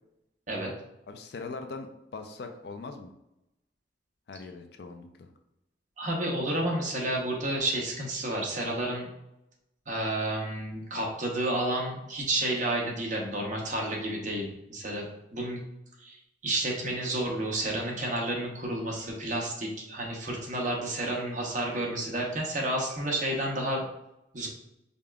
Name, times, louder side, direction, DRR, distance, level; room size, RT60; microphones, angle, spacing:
voice 1, 1.1-3.1 4.3-5.3, left 3 dB, 55° left, 5 dB, 0.4 m, -41 dB
voice 2, 6.0-9.1 9.9-15.6 16.0-23.8 24.3-24.5, right 1 dB, 40° right, -1 dB, 0.8 m, -31 dB
5.2 x 2.4 x 2.3 m, 0.87 s
head